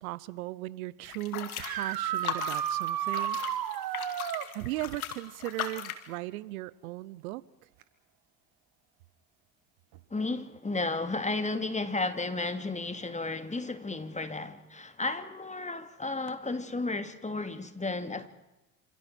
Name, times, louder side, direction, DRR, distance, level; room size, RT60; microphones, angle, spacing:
voice 1, 0.0-3.4 4.5-7.4, right 18 dB, 75° right, 1.0 m, -37 dB
sound 1, 1.1-6.1, left 11 dB, 85° left, 2.4 m, -38 dB
sound 2, 1.5-4.5 7.8-7.9 10.0-10.1 16.3-16.4, right 10 dB, 55° right, 2.5 m, -32 dB
voice 2, 10.1-18.3, left 3 dB, 15° left, 2.6 m, -33 dB
28.0 x 27.5 x 4.6 m
hypercardioid pair, 60°, 42 cm